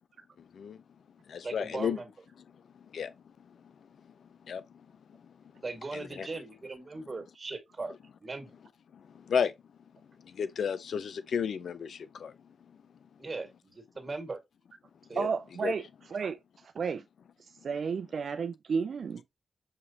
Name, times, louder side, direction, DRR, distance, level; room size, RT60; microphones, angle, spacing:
voice 1, 0.4-0.8 1.3-2.0 2.7-3.1 3.5-3.6 4.4-4.8 5.1-5.2 5.9-6.3 8.9-9.5 10.2-12.3 15.1-15.3 15.6-15.7, left 7 dB, 75° left, 0.4 m, -33 dB
voice 2, 1.4-2.1 5.6-7.9 8.2-8.6 13.2-14.4 15.1-15.2, right 3 dB, 40° right, 1.8 m, -39 dB
voice 3, 15.2-15.8 16.1-16.4 16.8-17.0 17.6-19.2, right 5 dB, 65° right, 0.4 m, -32 dB
6.5 x 2.9 x 2.8 m
supercardioid pair, 45°, 0 cm